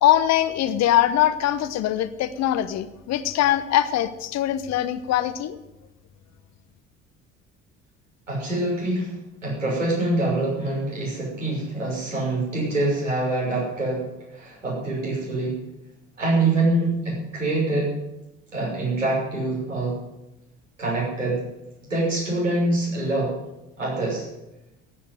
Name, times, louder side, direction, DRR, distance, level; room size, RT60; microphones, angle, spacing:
voice 1, 0.0-5.6, left 12 dB, 45° left, 13 dB, 1.1 m, -22 dB
voice 2, 8.3-9.1 9.4-14.1 14.3-15.6 16.2-17.9 18.5-20.0 20.8-21.4 21.9-23.3 23.8-24.2, right 2 dB, 80° right, -5 dB, 6.3 m, -25 dB
14.5 x 9.1 x 9.3 m, 0.95 s
figure-of-eight pair, 55°, 37 cm